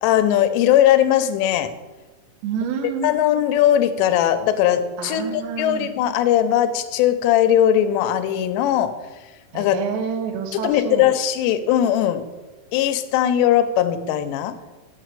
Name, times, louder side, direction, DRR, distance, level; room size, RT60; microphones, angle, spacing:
voice 1, 0.0-1.7 3.0-9.0 9.5-9.8 10.5-12.3 12.7-14.6, left 11 dB, 85° left, 10 dB, 2.9 m, -19 dB
voice 2, 2.4-3.1 5.0-5.9 9.5-11.1, right 7 dB, 85° right, 6 dB, 3.1 m, -28 dB
6.5 x 6.4 x 6.7 m, 1.2 s
omnidirectional pair, 4.9 m